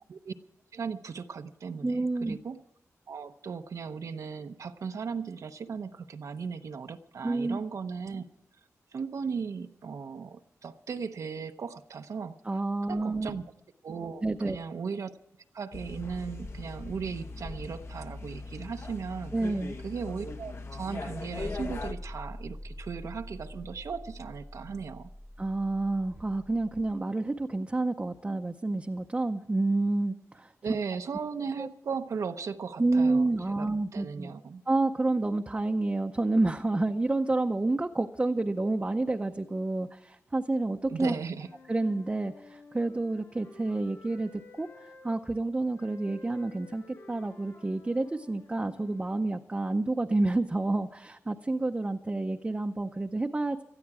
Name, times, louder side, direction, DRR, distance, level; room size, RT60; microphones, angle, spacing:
voice 1, 0.7-2.6 3.1-8.2 8.9-12.4 12.9-13.4 13.8-15.1 15.5-19.3 19.8-25.1 30.6-33.3 33.6-34.6 40.9-41.5, right 5 dB, 75° right, 7 dB, 0.7 m, -37 dB
voice 2, 1.8-2.4 7.2-7.6 12.4-13.3 14.2-14.6 19.3-19.8 25.4-30.5 31.6-31.7 32.8-34.3 34.7-41.1 41.7-53.6, right 2 dB, 20° right, 3 dB, 0.6 m, -29 dB
sound 1, 15.7-21.9, left 3 dB, 50° left, 1.0 m, -40 dB
sound 2, 21.4-26.9, equal, 10° left, 0.9 m, -44 dB
Wind instrument woodwind instrument, 41.1-45.1 45.7-49.3, left 2 dB, 80° left, 5.9 m, -53 dB
18.5 x 13.0 x 4.8 m, 0.80 s
wide cardioid pair, 125°, 6 cm